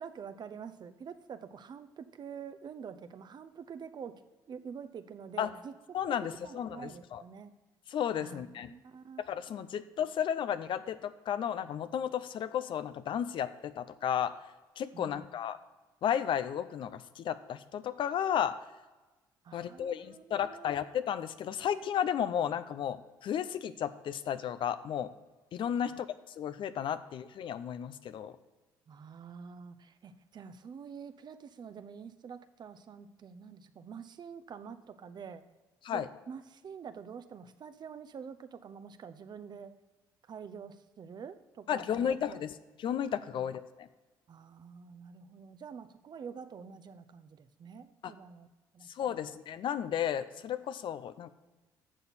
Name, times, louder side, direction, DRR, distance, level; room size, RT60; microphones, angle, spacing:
voice 1, 0.0-4.2 4.5-6.0 6.4-7.5 8.2-9.2 14.9-15.2 19.4-20.7 25.8-26.0 28.9-35.4 35.9-39.7 40.3-42.4 43.3-43.5 44.3-48.5 48.7-49.3, right 6 dB, 50° right, 10 dB, 0.8 m, -47 dB
voice 2, 5.9-7.2 7.9-8.7 9.2-14.4 14.8-15.6 16.0-18.6 19.5-25.1 25.5-26.1 26.4-28.3 35.8-36.1 41.7-42.5 42.8-43.9 48.0-48.1 48.9-51.3, left 9 dB, 60° left, 13 dB, 0.6 m, -33 dB
11.5 x 6.8 x 4.2 m, 1.2 s
hypercardioid pair, 60°, 10 cm